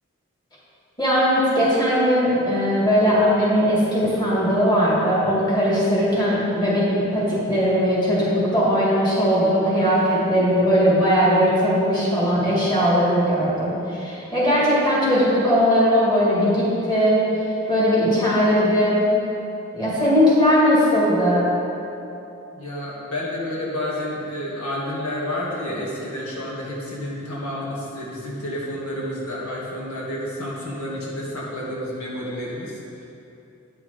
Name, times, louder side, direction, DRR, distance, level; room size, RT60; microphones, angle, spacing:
voice 1, 1.0-17.3 17.7-19.1 19.7-21.5, equal, 20° left, -7 dB, 2.1 m, -19 dB
voice 2, 22.5-33.1, left 1 dB, 90° left, -5 dB, 1.8 m, -30 dB
9.6 x 6.1 x 4.8 m, 2.8 s
head